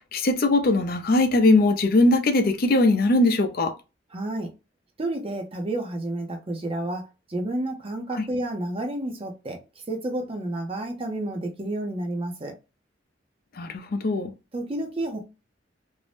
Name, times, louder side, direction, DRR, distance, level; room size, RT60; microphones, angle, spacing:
voice 1, 0.0-3.7 8.1-8.2 13.6-14.3, left 2 dB, 55° left, 0.5 m, -20 dB
voice 2, 4.1-4.5 5.0-12.5 14.5-15.2, right 1 dB, 30° right, 0.5 m, -30 dB
2.6 x 2.1 x 3.2 m
head